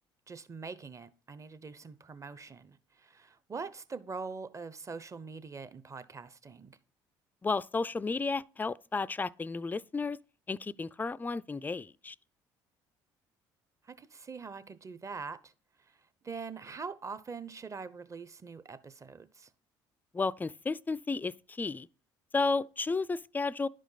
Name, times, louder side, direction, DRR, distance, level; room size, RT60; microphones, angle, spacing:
voice 1, 0.3-6.8 13.8-15.5 15.8-16.0 16.2-19.5, right 5 dB, 30° right, 0.8 m, -43 dB
voice 2, 7.4-10.2 10.5-12.2 20.1-21.9 22.3-23.7, left 4 dB, 15° left, 0.3 m, -32 dB
11.0 x 5.0 x 4.0 m
hypercardioid pair, 65°, 11 cm